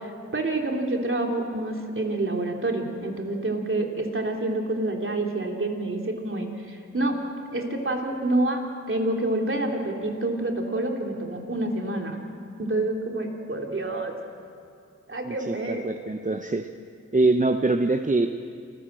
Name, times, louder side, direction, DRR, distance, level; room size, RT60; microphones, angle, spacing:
voice 1, 0.0-7.2 7.5-8.6 8.9-12.2 12.6-14.1 15.1-15.8, right 2 dB, 40° right, 1 dB, 3.5 m, -27 dB
voice 2, 15.3-16.7 17.1-18.4, right 2 dB, 25° right, 7 dB, 0.9 m, -24 dB
27.5 x 14.5 x 7.6 m, 2.4 s
cardioid pair, 45°, 31 cm